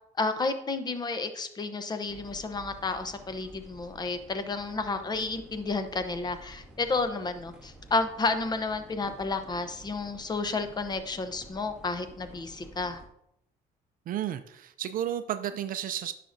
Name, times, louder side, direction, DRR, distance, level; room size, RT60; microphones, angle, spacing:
voice 1, 0.2-13.0, left 3 dB, 25° left, 9 dB, 0.8 m, -31 dB
sound 1, 2.1-13.1, right 1 dB, 5° right, 1.4 m, -51 dB
voice 2, 14.1-16.1, right 10 dB, 55° right, 10 dB, 0.5 m, -32 dB
9.9 x 5.9 x 2.7 m, 0.76 s
cardioid pair, 110°, 17 cm